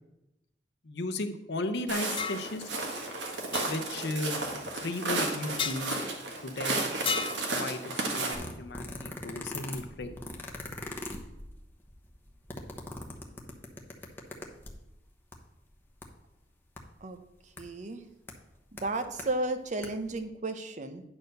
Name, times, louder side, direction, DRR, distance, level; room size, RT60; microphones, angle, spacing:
voice 1, 0.8-2.7 3.6-4.5 4.8-6.0 6.4-6.9 7.5-10.2, left 2 dB, 70° left, 9 dB, 0.8 m, -35 dB
Walk footsteps, 1.9-8.3, right 2 dB, 85° right, 1.6 m, -33 dB
Sword fight single hits, 2.2-2.4 3.5-3.7 5.6-5.8 7.1-7.4, left 6 dB, 30° left, 0.6 m, -31 dB
sound 1, 8.3-14.9 15.3-15.4 15.6-16.0 16.8-16.9 17.6-17.7 18.3-18.4 18.8-19.3 19.7-19.9 20.1-20.2, left 2 dB, 10° left, 1.0 m, -41 dB
voice 2, 17.6-18.0 18.8-21.0, right 2 dB, 45° right, 9 dB, 0.8 m, -33 dB
9.7 x 4.5 x 6.5 m, 0.92 s
head